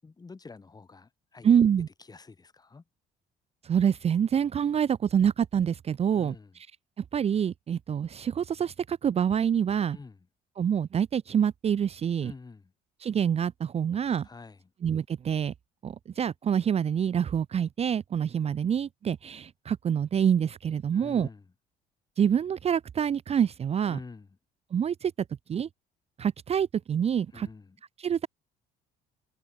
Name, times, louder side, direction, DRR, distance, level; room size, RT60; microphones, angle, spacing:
voice 1, 0.0-1.6 2.1-2.8 6.1-6.5 9.9-10.2 12.2-12.6 14.2-14.6 20.9-21.4 23.9-24.3 27.3-27.8, left 4 dB, 25° left, 6.8 m, -47 dB
voice 2, 1.4-1.9 3.6-6.7 7.1-10.0 10.6-12.3 13.0-14.3 14.8-15.5 15.8-21.3 22.2-24.0 24.7-25.1 25.5-25.7 26.2-27.5 28.0-28.3, right 8 dB, 35° right, 0.7 m, -26 dB
cardioid pair, 110°, 17 cm